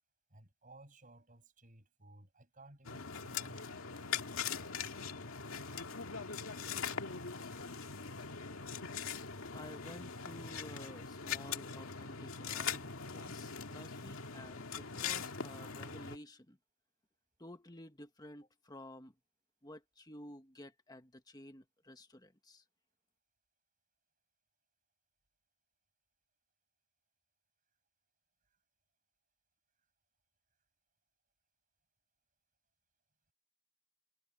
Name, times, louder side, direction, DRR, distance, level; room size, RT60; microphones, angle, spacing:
voice 1, 0.3-3.8, right 2 dB, 40° right, 6.6 m, -58 dB
sound 1, 2.8-16.2, left 6 dB, 75° left, 2.2 m, -41 dB
voice 2, 9.5-16.6 17.4-19.1 19.6-22.6, left 1 dB, 20° left, 1.5 m, -52 dB
head